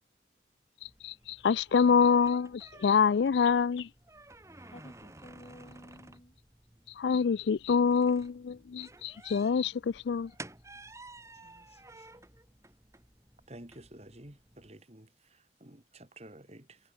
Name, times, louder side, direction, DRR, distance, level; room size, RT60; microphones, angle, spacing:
voice 1, 0.8-3.9 6.9-10.3, left 6 dB, 75° left, 0.4 m, -26 dB
sound 1, 0.8-14.7, right 2 dB, 15° right, 3.7 m, -53 dB
voice 2, 4.5-6.4 11.4-12.3, left 1 dB, 35° left, 5.5 m, -54 dB
voice 3, 13.5-16.8, right 1 dB, 35° right, 3.0 m, -51 dB
head